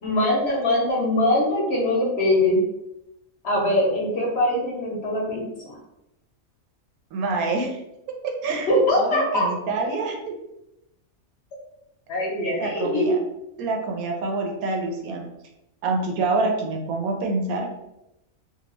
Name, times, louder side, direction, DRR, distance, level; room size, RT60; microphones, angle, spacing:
voice 1, 0.0-2.6 3.4-5.8 8.7-9.5 12.1-13.1, left 1 dB, 55° left, -3 dB, 0.9 m, -22 dB
voice 2, 7.1-7.8 8.4-10.4 12.6-13.2 13.6-15.3 15.8-17.7, right 3 dB, 80° right, 2 dB, 1.0 m, -26 dB
2.7 x 2.3 x 3.0 m, 0.88 s
omnidirectional pair, 1.5 m